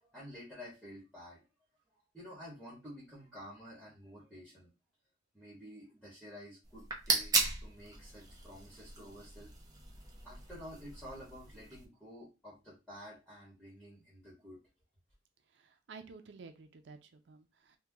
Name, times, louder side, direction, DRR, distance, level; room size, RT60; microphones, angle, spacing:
voice 1, 0.0-1.4 2.1-4.7 5.3-7.3 7.6-9.5 10.2-14.6, equal, ahead, -7 dB, 1.2 m, -51 dB
sound 1, 6.6-11.8, right 3 dB, 20° right, 0.6 m, -37 dB
voice 2, 15.5-17.8, right 4 dB, 85° right, 7 dB, 0.5 m, -52 dB
2.8 x 2.2 x 3.6 m, 0.27 s
head